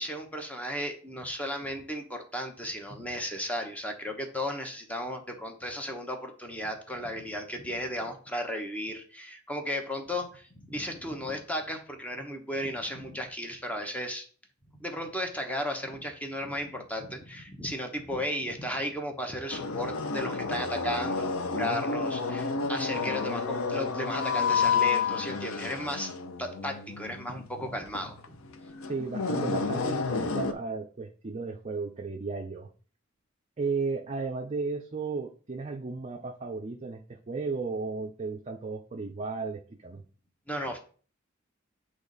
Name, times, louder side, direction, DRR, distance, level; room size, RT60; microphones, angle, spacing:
voice 1, 0.0-14.2 14.8-26.1 26.4-28.4 40.5-40.8, equal, 5° left, 4 dB, 0.9 m, -35 dB
sound 1, 19.5-30.5, left 5 dB, 70° left, 0.6 m, -30 dB
voice 2, 28.9-32.7 33.6-40.0, right 4 dB, 30° right, 2 dB, 0.5 m, -34 dB
8.0 x 3.1 x 3.9 m, 0.42 s
head